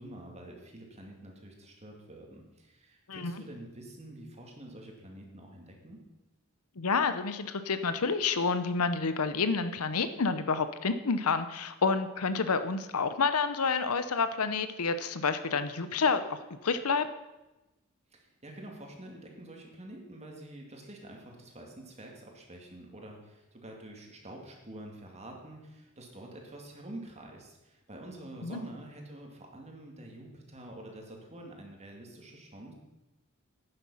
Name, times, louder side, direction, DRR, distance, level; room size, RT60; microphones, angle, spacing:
voice 1, 0.0-6.0 18.1-32.7, right 1 dB, 30° right, 1 dB, 2.4 m, -47 dB
voice 2, 6.8-17.1 28.4-28.6, left 4 dB, 80° left, 11 dB, 0.8 m, -29 dB
11.0 x 9.6 x 5.7 m, 1.0 s
head